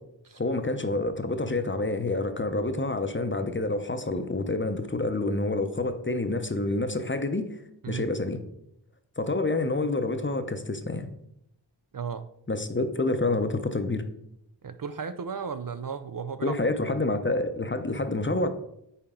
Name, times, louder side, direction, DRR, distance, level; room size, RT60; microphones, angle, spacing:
voice 1, 0.3-7.6 7.9-8.4 9.2-11.1 12.5-14.0 16.4-18.5, left 2 dB, 25° left, 8 dB, 0.7 m, -28 dB
voice 2, 11.9-12.3 14.6-16.6, right 6 dB, 50° right, 11 dB, 0.5 m, -34 dB
8.9 x 4.5 x 3.7 m, 0.78 s
wide cardioid pair, 60°, 46 cm